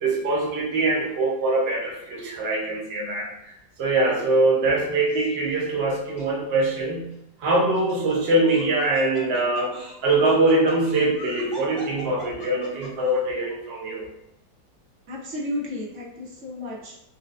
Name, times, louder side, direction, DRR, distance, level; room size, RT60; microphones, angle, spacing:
voice 1, 0.0-3.3 3.8-7.1 7.4-14.0, right 2 dB, 80° right, -3 dB, 0.5 m, -23 dB
Laughter, 5.1-5.6 6.2-6.3 7.5-13.1, equal, 40° left, 1.0 m, -42 dB
voice 2, 15.1-17.0, left 1 dB, 55° right, -4 dB, 1.0 m, -33 dB
4.3 x 2.2 x 2.4 m, 0.82 s
omnidirectional pair, 2.0 m